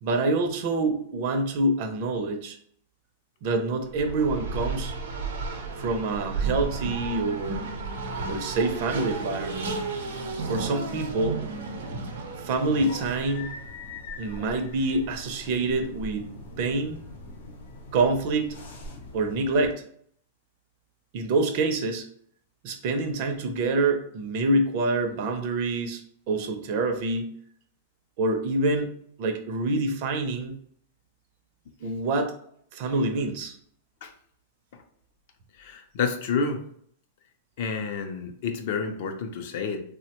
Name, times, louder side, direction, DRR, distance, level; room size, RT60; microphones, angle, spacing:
voice 1, 0.0-2.6 3.4-5.0 5.8-7.6 8.3-9.7 10.4-11.4 12.4-13.5 14.2-17.0 17.9-18.6 19.1-19.8 21.1-22.1 22.6-26.0 26.3-27.4 28.2-30.6 31.8-32.3 32.7-33.5, right 2 dB, 40° right, 6 dB, 0.4 m, -26 dB
Race car auto racing, 3.9-13.5, right 3 dB, 85° right, 0.6 m, -33 dB
sound 1, 12.5-19.7, left 2 dB, 90° left, 0.7 m, -42 dB
voice 2, 35.6-36.6 37.6-39.8, left 5 dB, 50° left, 5 dB, 0.4 m, -29 dB
3.3 x 2.1 x 2.9 m, 0.63 s
supercardioid pair, 165°, 0 cm